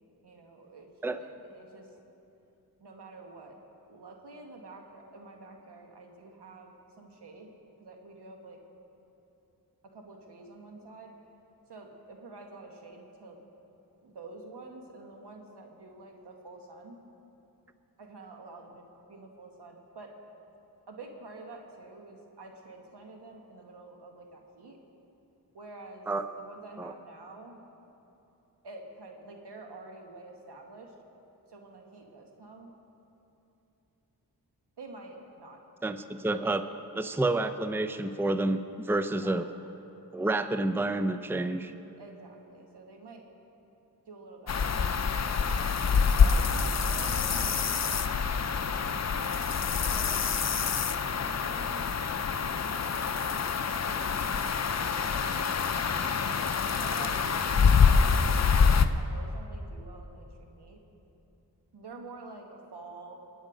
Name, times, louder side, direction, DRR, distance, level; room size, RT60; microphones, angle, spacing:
voice 1, 0.2-0.9 1.2-1.9 2.8-3.6 3.9-6.7 7.0-7.5 7.8-8.6 9.8-11.1 11.7-13.4 14.0-17.0 18.0-20.1 20.9-24.8 25.5-26.1 26.4-27.6 28.6-30.9 31.5-32.7 34.8-35.6 39.1-39.5 42.0-43.3 44.1-44.8 45.4-45.9 46.2-48.8 49.1-50.3 51.0-51.9 52.7-53.1 53.9-54.3 54.6-58.4 58.9-60.8 61.7-63.2, right 3 dB, 80° right, 2 dB, 1.7 m, -48 dB
voice 2, 35.8-36.7 36.9-39.5 40.1-41.7, right 2 dB, 5° right, 10 dB, 0.6 m, -29 dB
sound 1, 44.5-58.9, left 6 dB, 40° left, 0.6 m, -26 dB
22.0 x 9.0 x 5.1 m, 2.9 s
cardioid pair, 55°, 40 cm